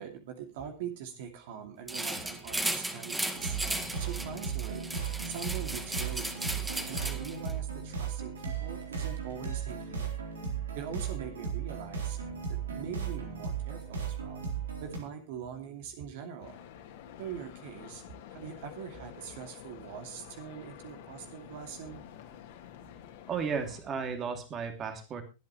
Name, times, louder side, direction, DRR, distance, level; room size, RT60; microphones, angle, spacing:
voice 1, 0.0-5.0 5.2-10.1 10.7-14.4 14.8-16.6 17.2-18.0 18.3-22.0, right 8 dB, 60° right, 5 dB, 2.6 m, -43 dB
sound 1, 1.9-7.5, right 1 dB, 10° right, 2.0 m, -36 dB
sound 2, 3.3-15.0, right 6 dB, 80° right, 3.8 m, -36 dB
sound 3, 16.4-23.8, left 9 dB, 65° left, 3.1 m, -49 dB
voice 2, 23.3-25.2, right 6 dB, 30° right, 7 dB, 2.7 m, -34 dB
22.5 x 8.9 x 3.2 m, 0.29 s
hypercardioid pair, 95°, 0 cm